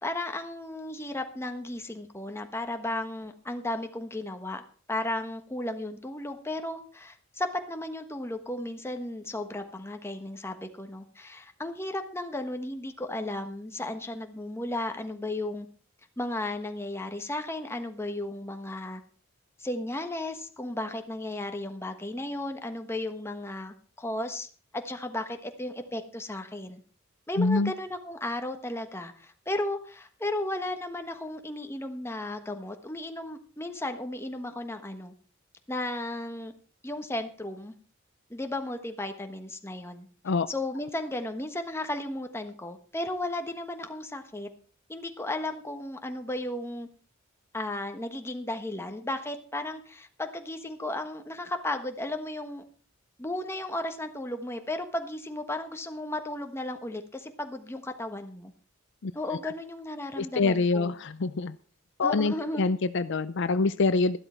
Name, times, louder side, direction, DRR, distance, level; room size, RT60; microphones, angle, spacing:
voice 1, 0.0-4.6 4.9-15.7 16.2-19.0 19.6-24.5 24.7-26.8 27.3-35.1 35.7-36.5 36.8-37.7 38.3-40.1 40.5-44.5 44.9-46.9 47.5-52.6 53.2-58.5 59.1-60.9 62.0-62.7, left 1 dB, 15° left, 6 dB, 1.3 m, -34 dB
voice 2, 27.4-27.7 40.2-40.5 59.0-59.1 60.2-61.6 62.0-64.2, left 3 dB, 60° left, 13 dB, 0.5 m, -25 dB
13.0 x 12.0 x 4.4 m, 0.41 s
head